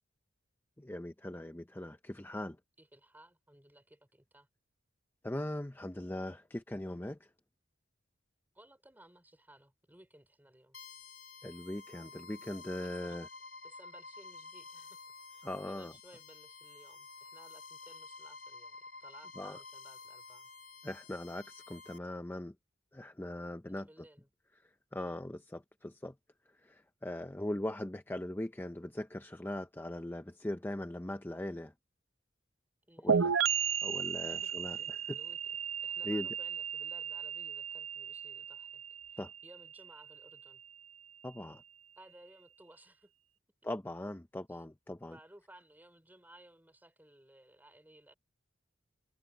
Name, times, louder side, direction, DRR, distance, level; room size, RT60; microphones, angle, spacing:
voice 1, 0.8-2.6 5.2-7.3 11.4-13.3 15.4-15.9 19.4-19.6 20.8-22.5 22.9-23.9 24.9-26.1 26.6-31.7 33.0-33.4 33.8-35.2 36.0-36.3 39.2-39.3 41.2-41.6 43.6-45.2, left 1 dB, 10° left, 0.6 m, -40 dB
voice 2, 2.8-4.5 8.5-10.8 12.8-13.2 13.6-15.0 15.3-20.5 23.7-24.3 25.0-25.2 32.9-33.3 34.2-35.4 35.8-38.8 39.1-40.6 42.0-43.1 44.5-44.6 45.1-48.1, right 1 dB, 10° right, 5.0 m, -59 dB
sound 1, 10.7-22.0, left 4 dB, 70° left, 3.0 m, -51 dB
sound 2, 33.1-40.6, right 7 dB, 90° right, 0.9 m, -35 dB
head